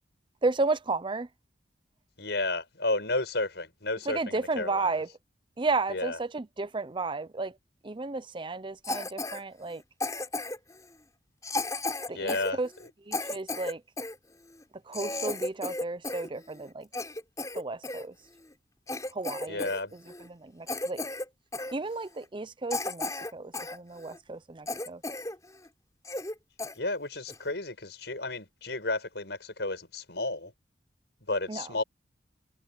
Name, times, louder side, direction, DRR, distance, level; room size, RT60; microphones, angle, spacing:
voice 1, 0.4-1.3 4.1-5.1 5.6-7.5 7.8-9.8 12.1-12.7 13.1-13.8 14.9-16.9 17.5-18.1 19.2-19.7 20.4-21.0 21.7-25.0 31.5-31.6, right 3 dB, 30° right, 0.6 m, -33 dB
voice 2, 2.2-5.0 5.9-6.2 12.1-12.9 19.5-19.9 26.8-30.5 31.3-31.8, left 2 dB, 70° left, 6.4 m, -32 dB
Cough, 8.8-9.4 10.0-10.7 11.4-14.2 14.6-14.7 14.9-16.3 16.6-18.0 18.5-18.6 18.9-19.8 20.1-20.3 20.7-21.3 21.5-21.7 22.2-22.3 22.7-23.8 24.1-24.2 24.7-25.4 25.7-25.8 26.1-26.3 26.6-26.8 27.3-27.5, left 2 dB, 20° left, 4.6 m, -34 dB
head